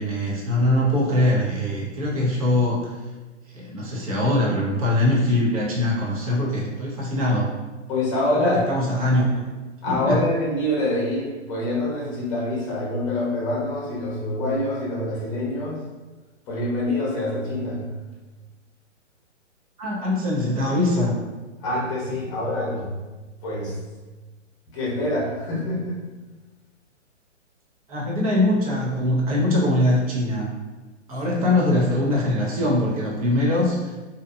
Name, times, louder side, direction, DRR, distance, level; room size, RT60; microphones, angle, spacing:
voice 1, 0.0-2.9 3.5-7.5 8.4-9.4 9.9-10.2 19.8-21.2 27.9-30.5 31.1-33.9, left 1 dB, 30° right, -4 dB, 0.5 m, -22 dB
voice 2, 7.9-8.6 9.8-15.8 16.5-17.8 21.6-22.9 23.4-23.8 24.7-26.0 31.3-31.4, left 1 dB, 25° left, -5 dB, 0.8 m, -25 dB
2.6 x 2.2 x 2.5 m, 1.2 s
hypercardioid pair, 140°, 37 cm